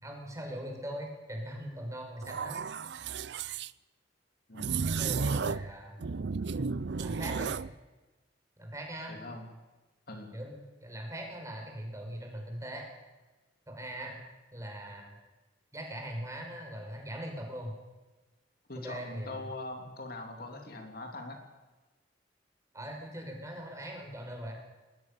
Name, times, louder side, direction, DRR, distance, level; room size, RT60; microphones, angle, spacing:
voice 1, 0.0-2.6 5.0-6.0 7.0-7.6 8.6-9.2 10.3-12.9 13.7-14.2 14.5-15.2 15.7-17.7 18.8-19.4 22.7-24.5, right 1 dB, 20° right, 1 dB, 5.8 m, -41 dB
sound 1, 2.2-3.7 4.6-5.7 6.0-7.7, right 5 dB, 65° right, 0.6 m, -33 dB
voice 2, 4.5-4.9 9.1-9.5 10.1-10.3 18.7-21.4, left 2 dB, 55° left, 3 dB, 3.3 m, -42 dB
20.5 x 19.5 x 7.0 m, 1.1 s
head